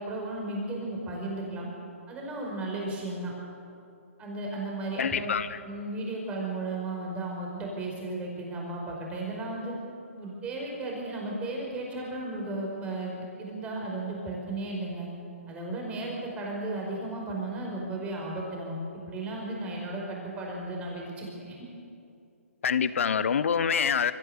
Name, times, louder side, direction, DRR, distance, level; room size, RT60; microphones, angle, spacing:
voice 1, 0.0-1.7 2.1-3.3 4.2-5.4 5.6-9.7 10.1-15.1 15.5-18.8 19.1-21.6, right 2 dB, 15° right, -1 dB, 5.2 m, -34 dB
voice 2, 5.0-5.6 22.6-24.1, left 7 dB, 65° left, 15 dB, 1.0 m, -26 dB
24.5 x 14.5 x 8.1 m, 2.6 s
hypercardioid pair, 140°, 8 cm